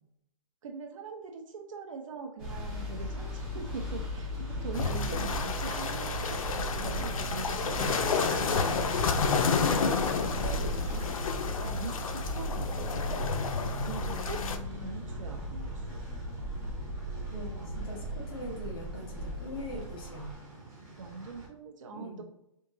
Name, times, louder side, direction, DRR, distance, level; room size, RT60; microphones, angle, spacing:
voice 1, 0.6-9.1 11.6-13.3 13.8-16.0 17.6-17.9 21.0-22.2, right 4 dB, 70° right, 2 dB, 0.6 m, -42 dB
sound 1, 2.4-20.3, equal, ahead, 0.3 m, -37 dB
Train, 2.4-21.5, right 2 dB, 25° right, 1.4 m, -48 dB
sound 2, 4.7-14.6, left 5 dB, 90° left, 0.5 m, -31 dB
voice 2, 4.8-5.3 9.8-11.0 13.8-15.1 17.3-20.4 21.9-22.2, left 1 dB, 45° left, -3 dB, 1.0 m, -42 dB
3.7 x 2.7 x 3.7 m, 0.82 s
hypercardioid pair, 175°, 17 cm